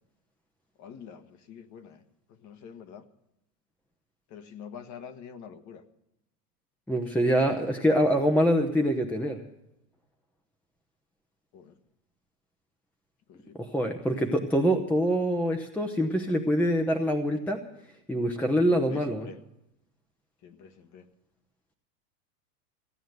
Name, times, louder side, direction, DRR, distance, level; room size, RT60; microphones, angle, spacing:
voice 1, 0.8-2.0 2.3-3.1 4.3-5.8 11.5-11.8 13.3-13.6 18.7-19.4 20.4-21.1, left 7 dB, 35° left, 9 dB, 1.4 m, -46 dB
voice 2, 6.9-9.4 13.5-17.6 18.1-19.3, equal, 5° left, 4 dB, 0.8 m, -25 dB
15.5 x 9.1 x 7.9 m, 0.86 s
supercardioid pair, 125°, 48 cm